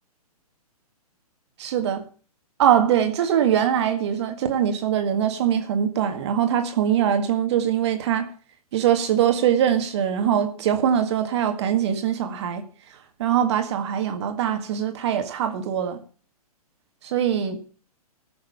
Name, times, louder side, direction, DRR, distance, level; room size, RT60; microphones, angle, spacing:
voice 1, 1.6-2.1 2.6-8.3 8.7-12.6 12.9-16.0 17.0-17.7, right 9 dB, 45° right, 1.8 m, -22 dB
15.5 x 6.7 x 6.9 m
figure-of-eight pair, 120°, 20 cm